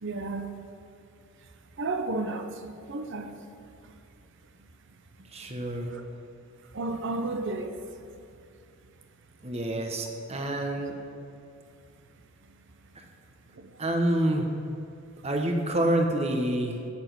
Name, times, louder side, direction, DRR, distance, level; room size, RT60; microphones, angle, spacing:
voice 1, 0.0-0.5 1.8-3.4 5.9-6.0 6.7-7.8 13.5-13.7, right 2 dB, 60° right, 6 dB, 0.8 m, -32 dB
voice 2, 5.3-5.9 9.4-10.9 12.9-13.0 13.8-14.5 15.2-16.8, right 1 dB, 30° right, 2 dB, 1.1 m, -27 dB
8.1 x 6.9 x 8.2 m, 2.5 s
head